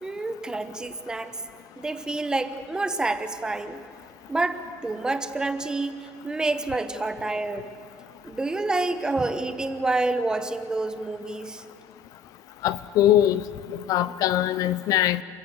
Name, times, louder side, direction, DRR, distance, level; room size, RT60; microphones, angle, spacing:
voice 1, 0.0-1.3 1.8-3.8 4.3-7.7 8.2-11.6, right 2 dB, 10° right, 10 dB, 1.0 m, -28 dB
voice 2, 12.6-13.4 13.9-15.2, left 12 dB, 60° left, 16 dB, 0.6 m, -21 dB
29.0 x 14.5 x 8.2 m, 2.6 s
cardioid pair, 165°, 7 cm